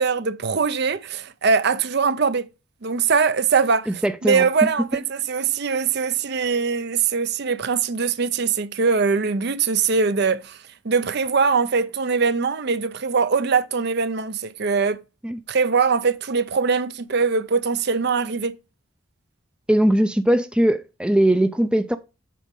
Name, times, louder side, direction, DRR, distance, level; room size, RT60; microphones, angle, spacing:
voice 1, 0.0-2.5 2.8-10.6 10.8-15.0 15.5-18.6, right 5 dB, 55° right, 0.6 m, -22 dB
voice 2, 3.9-4.5 15.2-15.4 19.7-22.0, right 1 dB, 5° right, 0.4 m, -20 dB
8.4 x 5.0 x 3.6 m
head